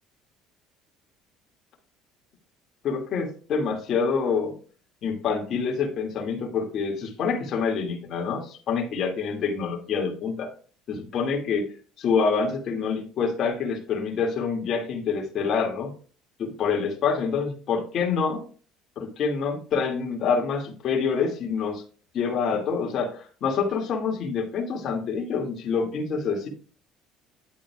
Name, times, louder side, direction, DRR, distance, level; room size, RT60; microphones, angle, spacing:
voice 1, 2.8-4.6 5.0-10.5 10.9-11.7 12.0-15.9 16.4-18.4 19.0-21.8 22.1-26.5, left 5 dB, 55° left, 1 dB, 2.6 m, -26 dB
10.5 x 8.5 x 2.5 m, 0.41 s
supercardioid pair, 80°, 0 cm